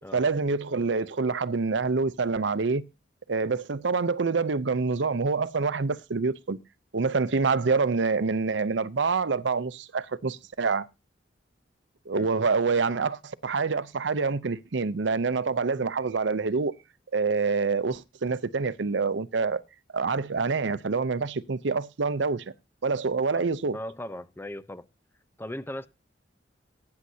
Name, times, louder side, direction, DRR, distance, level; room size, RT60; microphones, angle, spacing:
voice 1, 0.1-2.9 3.3-6.6 6.9-10.9 12.1-16.7 17.1-19.6 19.9-22.5 22.8-23.8, right 4 dB, 75° right, 0.6 m, -26 dB
voice 2, 23.7-24.9 25.4-25.9, left 1 dB, 15° left, 0.7 m, -38 dB
19.0 x 9.6 x 2.7 m
head